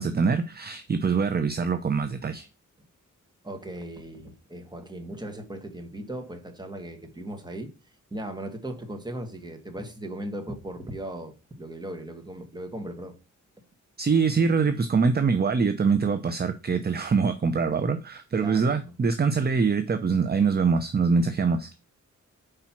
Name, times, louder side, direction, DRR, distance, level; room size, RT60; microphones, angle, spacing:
voice 1, 0.0-2.5 14.0-21.7, right 5 dB, 30° right, 0.6 m, -24 dB
voice 2, 3.4-7.7 8.1-13.2 18.3-18.9, right 1 dB, 15° right, 1.3 m, -37 dB
5.0 x 4.4 x 5.8 m
wide cardioid pair, 100°, 32 cm